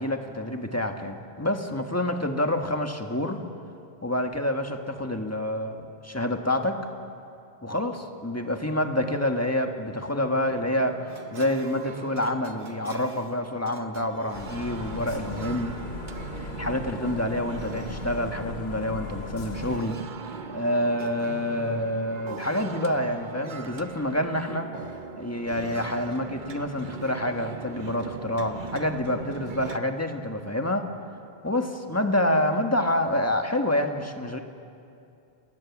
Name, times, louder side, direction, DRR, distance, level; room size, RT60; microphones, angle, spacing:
voice 1, 0.0-3.4 4.0-6.8 7.6-11.0 11.3-15.7 16.3-20.0 20.5-24.7 25.2-30.9 31.4-34.4, left 1 dB, 15° left, 4 dB, 1.5 m, -27 dB
sound 1, 10.5-29.8, right 6 dB, 50° right, 1.0 m, -40 dB
sound 2, 14.3-19.8, left 6 dB, 75° left, 1.2 m, -38 dB
29.5 x 19.5 x 7.3 m, 2.6 s
omnidirectional pair, 1.0 m